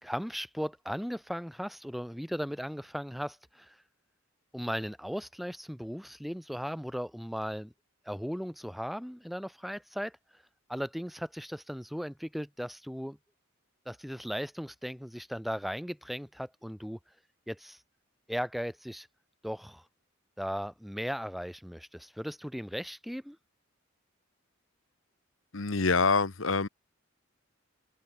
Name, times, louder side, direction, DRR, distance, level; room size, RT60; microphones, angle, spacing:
voice 1, 0.0-3.8 4.5-7.7 8.0-10.2 10.7-13.2 13.8-17.0 17.5-17.8 18.3-19.1 19.4-19.8 20.4-23.4, equal, ahead, 2.9 m, -37 dB
voice 2, 25.5-26.7, left 4 dB, 70° left, 1.3 m, -26 dB
head